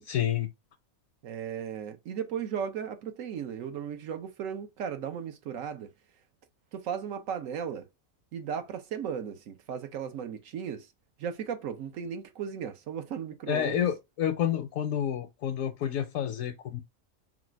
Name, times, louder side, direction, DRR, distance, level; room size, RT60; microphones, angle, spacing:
voice 1, 0.1-0.5 13.5-16.8, left 10 dB, 80° left, 1.0 m, -29 dB
voice 2, 1.2-5.9 6.7-7.9 8.3-10.9 11.2-13.9, right 8 dB, 75° right, 1.1 m, -36 dB
4.1 x 2.4 x 4.5 m
omnidirectional pair, 1.4 m